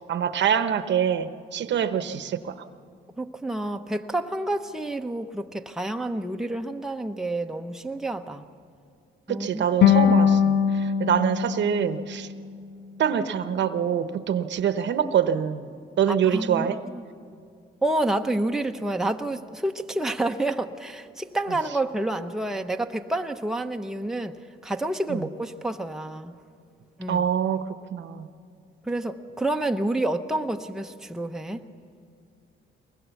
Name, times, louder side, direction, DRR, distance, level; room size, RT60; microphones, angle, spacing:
voice 1, 0.1-2.5 9.3-12.3 13.0-15.7 16.0-16.8 25.1-25.3 27.1-28.3, right 8 dB, 65° right, 1.0 m, -25 dB
voice 2, 3.2-8.4 9.3-9.6 16.1-17.1 17.8-26.3 27.0-27.2 28.8-31.6, right 2 dB, ahead, 0.9 m, -29 dB
sound 1, 9.8-12.9, left 8 dB, 70° left, 1.3 m, -22 dB
23.5 x 20.5 x 7.1 m
cardioid pair, 90°, 20 cm